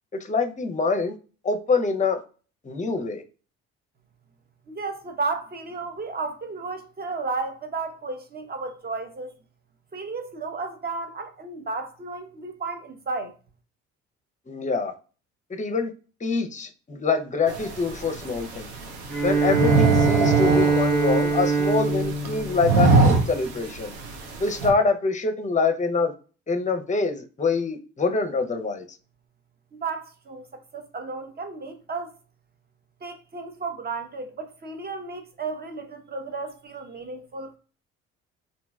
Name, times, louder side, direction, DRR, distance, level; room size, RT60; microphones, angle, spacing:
voice 1, 0.2-1.2 1.4-2.2 2.6-3.2 14.5-14.9 15.5-15.9 16.2-18.7 19.2-23.9 24.4-26.1 26.5-28.8, left 4 dB, 20° left, 0.6 m, -25 dB
voice 2, 4.7-9.3 9.9-13.3 29.7-32.1 33.0-37.6, right 4 dB, 30° right, 0.7 m, -33 dB
sound 1, 17.5-24.7, right 3 dB, 90° right, 0.7 m, -24 dB
Bowed string instrument, 19.1-23.5, right 4 dB, 70° right, 1.3 m, -23 dB
2.9 x 2.6 x 2.3 m
hypercardioid pair, 55°, 33 cm